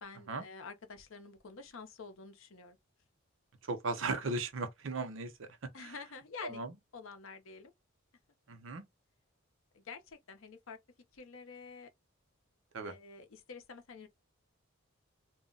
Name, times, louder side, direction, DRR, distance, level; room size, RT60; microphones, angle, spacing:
voice 1, 0.0-2.8 5.7-6.6 6.9-7.7 9.7-10.8 11.1-11.9 12.8-14.1, left 5 dB, 70° left, 0.6 m, -48 dB
voice 2, 3.6-5.5 5.8-5.9 6.4-6.7 8.5-8.8 12.7-12.9, right 3 dB, 65° right, 0.6 m, -37 dB
2.2 x 2.0 x 3.7 m
head